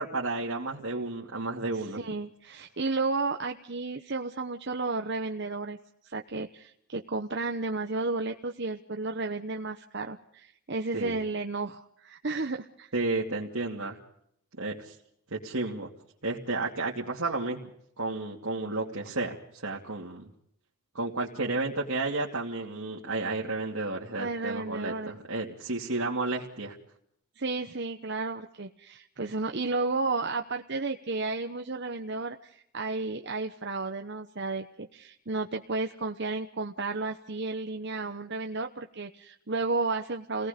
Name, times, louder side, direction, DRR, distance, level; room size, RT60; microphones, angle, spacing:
voice 1, 0.0-2.0 10.9-11.2 12.9-14.0 14.6-14.9 15.3-15.9 16.2-17.7 18.0-20.3 20.9-26.8, right 2 dB, 70° right, -3 dB, 2.6 m, -32 dB
voice 2, 1.9-12.9 24.2-25.1 27.4-40.5, right 3 dB, 50° right, 5 dB, 1.0 m, -32 dB
29.0 x 18.5 x 5.2 m, 0.72 s
head